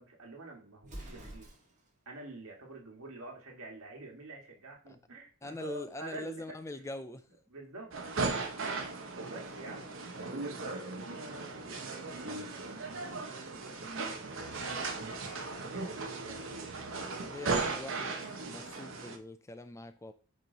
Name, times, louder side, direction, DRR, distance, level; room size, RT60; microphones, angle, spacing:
voice 1, 0.0-1.5 2.1-6.4 7.3-7.9 9.2-9.9 11.2-16.4, right 2 dB, 75° right, 1.9 m, -48 dB
Explosion, 0.8-2.0, right 1 dB, 35° right, 1.6 m, -47 dB
voice 2, 5.4-7.2 17.2-20.1, left 2 dB, 15° left, 0.3 m, -43 dB
sound 1, 7.9-19.2, right 3 dB, 60° right, 0.9 m, -37 dB
8.9 x 3.1 x 4.0 m
head